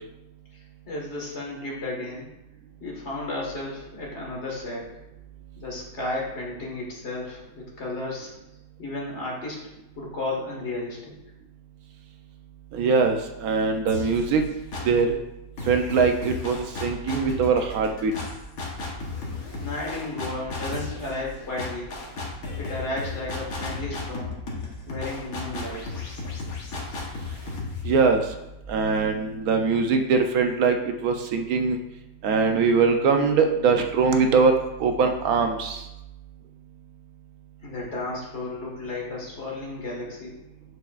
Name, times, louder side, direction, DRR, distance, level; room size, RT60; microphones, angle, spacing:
voice 1, 0.5-2.3 2.8-4.9 5.6-8.3 8.8-9.6 10.0-11.1 19.6-21.9 22.6-24.3 24.9-26.1 37.6-40.3, left 2 dB, 50° left, -3 dB, 1.9 m, -33 dB
voice 2, 12.7-14.4 14.8-15.2 15.7-18.1 27.8-28.2 28.7-31.8 32.2-35.8, right 5 dB, 75° right, 5 dB, 1.1 m, -22 dB
sound 1, 13.9-15.1 15.6-29.3, left 3 dB, 70° left, 1.6 m, -35 dB
6.8 x 6.5 x 2.4 m, 0.92 s
omnidirectional pair, 1.6 m